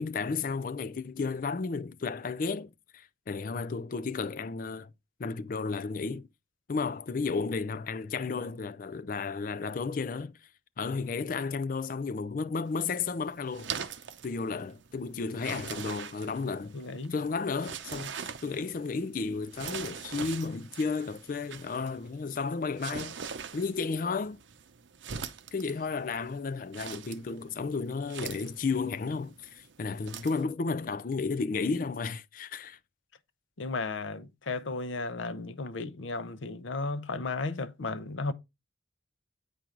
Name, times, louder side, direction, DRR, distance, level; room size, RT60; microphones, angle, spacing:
voice 1, 0.0-4.9 5.2-6.3 6.7-10.4 10.8-13.7 14.2-16.8 17.1-18.1 18.4-23.2 23.5-24.4 25.1-25.3 25.5-32.8, left 4 dB, 45° left, 0.4 m, -33 dB
sound 1, 12.7-30.4, right 7 dB, 80° right, 0.7 m, -43 dB
voice 2, 16.7-17.1 33.6-38.3, left 3 dB, 85° left, 0.7 m, -34 dB
8.5 x 4.6 x 3.8 m
head